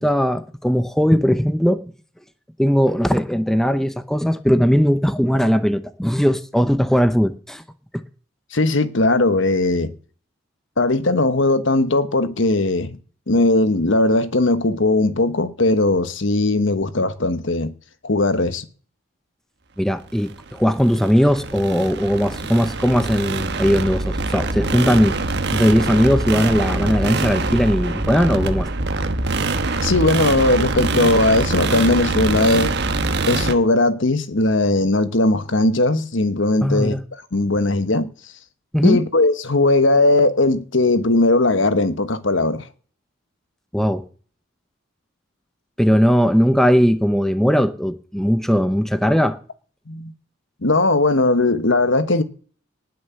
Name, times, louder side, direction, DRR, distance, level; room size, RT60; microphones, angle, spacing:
voice 1, 0.0-1.8 2.6-7.6 19.8-25.2 25.5-28.7 36.6-37.0 38.7-39.0 43.7-44.0 45.8-49.4, equal, ahead, 0.8 m, -18 dB
voice 2, 8.5-9.9 10.8-13.0 13.3-17.7 18.0-18.6 29.8-32.8 33.3-36.9 37.3-38.1 38.8-42.7 49.9-50.1 50.6-52.2, left 2 dB, 60° left, 1.2 m, -18 dB
sound 1, 20.2-33.5, right 3 dB, 55° right, 1.3 m, -24 dB
19.0 x 6.5 x 6.9 m
head